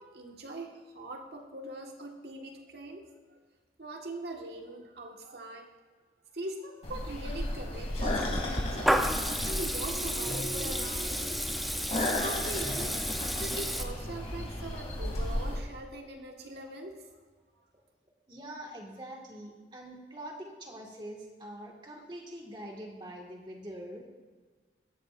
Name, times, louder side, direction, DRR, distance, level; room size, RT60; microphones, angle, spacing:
voice 1, 0.0-3.4 3.8-5.7 6.3-9.1 9.5-11.5 12.2-13.0 13.4-17.0 17.5-17.6, right 1 dB, 70° right, 2 dB, 1.5 m, -42 dB
sound 1, 6.8-15.6, left 1 dB, 35° left, 2.7 m, -35 dB
Water tap faucet / Liquid, 8.1-13.8, equal, ahead, 0.6 m, -32 dB
sound 2, 9.6-15.8, right 3 dB, 45° right, 1.1 m, -48 dB
voice 2, 18.3-24.1, right 1 dB, 25° right, 0 dB, 1.8 m, -44 dB
17.0 x 13.0 x 2.5 m, 1.4 s
head